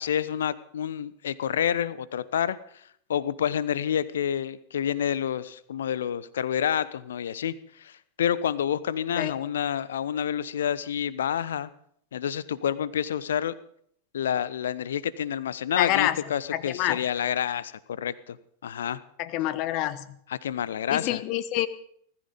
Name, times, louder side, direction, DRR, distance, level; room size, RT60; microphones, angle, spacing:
voice 1, 0.0-2.6 3.1-11.7 12.1-13.5 14.1-18.4 18.6-19.0 20.3-21.2, left 9 dB, 65° left, 18 dB, 0.8 m, -28 dB
voice 2, 15.8-16.2 16.5-17.0 19.2-20.1 20.9-21.7, left 14 dB, 40° left, 16 dB, 1.1 m, -26 dB
19.5 x 14.0 x 5.2 m, 0.67 s
figure-of-eight pair, 90°, 0 cm